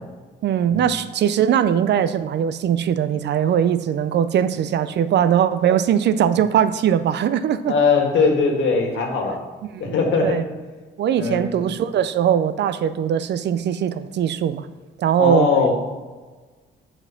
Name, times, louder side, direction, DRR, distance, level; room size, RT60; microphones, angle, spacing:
voice 1, 0.4-7.7 9.7-10.0 10.2-10.4 11.0-14.7 15.0-15.5, right 9 dB, 60° right, 13 dB, 0.4 m, -20 dB
voice 2, 7.6-9.4 9.8-10.4 11.1-11.6 15.2-15.7, left 4 dB, 70° left, 2 dB, 1.6 m, -20 dB
6.7 x 4.4 x 5.8 m, 1.3 s
cardioid pair, 90°, 20 cm